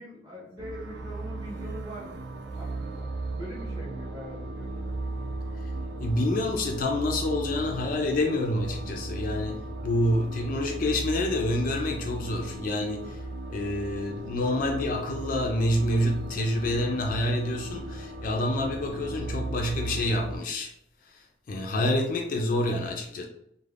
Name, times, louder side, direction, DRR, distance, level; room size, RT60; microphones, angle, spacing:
voice 1, 0.0-2.1 2.6-4.7, equal, 20° right, -4 dB, 0.8 m, -42 dB
sound 1, 0.6-20.4, right 2 dB, 60° right, 0.3 m, -36 dB
voice 2, 6.0-13.2 13.5-20.7 21.1-23.3, left 1 dB, 45° left, 2 dB, 0.3 m, -28 dB
2.4 x 2.1 x 3.2 m, 0.74 s
head